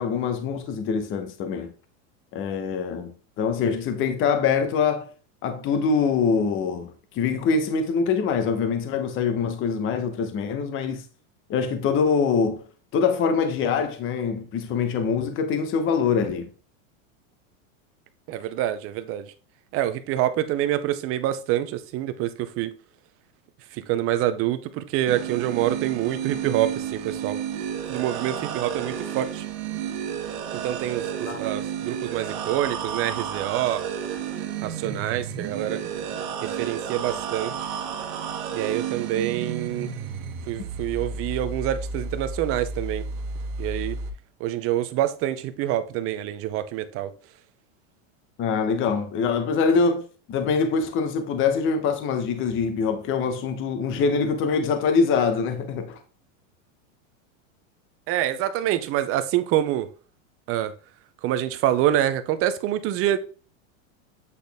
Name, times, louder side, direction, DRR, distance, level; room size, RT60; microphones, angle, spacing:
voice 1, 0.0-1.7 2.3-5.1 5.4-11.0 11.5-12.6 12.9-16.5 31.3-31.4 48.4-56.0, left 5 dB, 30° left, 1.0 m, -24 dB
voice 2, 18.3-19.3 19.7-22.7 23.7-27.4 27.9-29.5 30.5-33.8 34.6-35.8 36.4-37.7 38.5-39.9 40.5-43.0 43.6-44.0 44.4-47.1 58.1-59.9 60.5-60.7 61.2-63.2, right 12 dB, 35° right, 0.7 m, -26 dB
sound 1, 25.1-44.1, right 7 dB, 55° right, 1.5 m, -32 dB
8.4 x 4.1 x 3.5 m
supercardioid pair, 135°, 40 cm